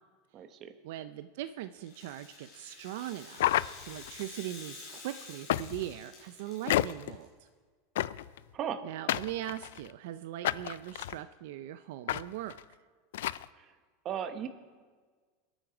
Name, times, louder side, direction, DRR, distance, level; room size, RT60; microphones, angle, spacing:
voice 1, 0.3-0.8 8.5-8.8 13.5-13.7 14.0-14.5, right 9 dB, 30° right, 9 dB, 1.0 m, -36 dB
voice 2, 0.8-3.4 3.9-7.5 8.8-12.6, right 13 dB, 65° right, 12 dB, 0.5 m, -40 dB
Rattle (instrument), 1.8-7.3, left 4 dB, 35° left, 4.2 m, -50 dB
sound 1, 3.3-4.2 5.5-6.0 6.7-7.2 8.0-8.4 9.1-9.9 10.4-11.2 12.1-12.2 12.5-12.6 13.1-13.4, left 13 dB, 85° left, 0.3 m, -31 dB
26.5 x 9.0 x 5.1 m, 1.5 s
supercardioid pair, 165°, 0 cm